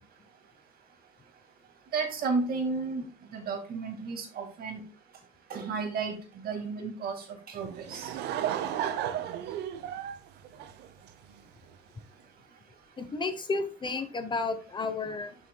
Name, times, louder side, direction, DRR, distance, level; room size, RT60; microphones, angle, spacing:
voice 1, 1.9-3.1 3.3-4.8 5.5-8.1, right 4 dB, 65° right, 4 dB, 2.1 m, -33 dB
Laughter / Crowd, 7.6-11.4, right 10 dB, 80° right, 0.8 m, -33 dB
voice 2, 13.0-15.4, left 3 dB, 25° left, 9 dB, 1.0 m, -32 dB
9.2 x 6.3 x 2.3 m, 0.35 s
cardioid pair, 110°, 17 cm